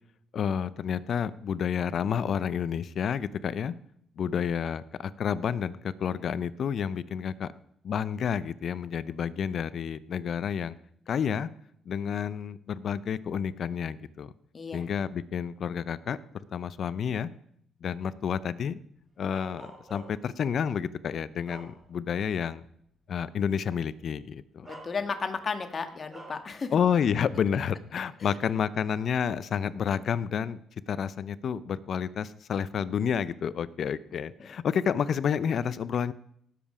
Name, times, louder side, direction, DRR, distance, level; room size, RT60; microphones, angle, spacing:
voice 1, 0.3-3.7 4.2-7.5 7.8-10.7 11.1-11.5 11.9-14.3 14.7-16.2 16.5-17.3 17.8-18.8 19.2-22.6 23.1-24.7 26.7-30.6 30.9-36.1, left 7 dB, 60° left, 17 dB, 0.6 m, -30 dB
Bark, 19.3-20.4 21.0-22.2 22.6-22.8 23.9-24.1 24.6-25.4 26.1-26.5, right 2 dB, 20° right, 3.9 m, -49 dB
voice 2, 24.6-26.8 28.2-28.4 34.4-34.5, left 5 dB, 40° left, 7 dB, 1.5 m, -34 dB
18.0 x 7.6 x 4.9 m, 0.70 s
cardioid pair, 90°, 0 cm